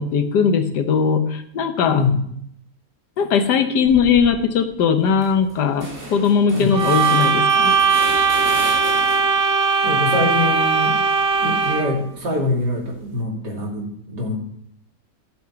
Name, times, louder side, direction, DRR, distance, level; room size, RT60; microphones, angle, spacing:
voice 1, 0.0-2.0 3.2-7.7, left 6 dB, 80° left, 8 dB, 1.6 m, -19 dB
sound 1, 3.8-4.3 4.7-4.8 5.1-9.5 9.8-12.0, right 1 dB, 20° right, 3.4 m, -36 dB
sound 2, 6.7-12.0, right 5 dB, 40° right, 1.2 m, -19 dB
voice 2, 9.8-11.0 11.4-14.4, left 2 dB, 90° right, -2 dB, 3.4 m, -24 dB
12.0 x 5.9 x 5.8 m, 0.70 s
omnidirectional pair, 1.8 m